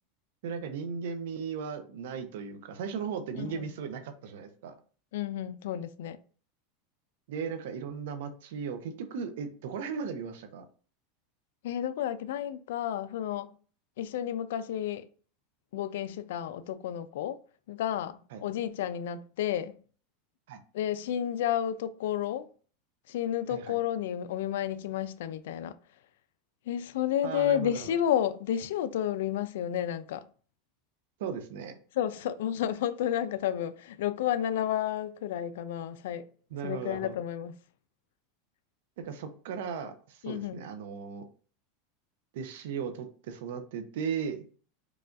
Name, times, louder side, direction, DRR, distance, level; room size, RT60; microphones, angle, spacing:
voice 1, 0.4-4.7 7.3-10.7 18.3-18.4 20.5-20.6 23.5-23.8 27.2-28.0 31.2-31.8 36.5-37.1 39.0-41.3 42.3-44.4, right 6 dB, 75° right, 0.7 m, -37 dB
voice 2, 3.3-3.7 5.1-6.2 11.6-13.5 14.0-15.0 15.7-17.4 17.7-19.8 20.7-22.5 23.1-25.7 26.7-30.3 31.9-36.2 36.6-37.5 40.2-40.6, left 10 dB, 80° left, 0.4 m, -31 dB
4.8 x 2.3 x 2.5 m
supercardioid pair, 140°, 0 cm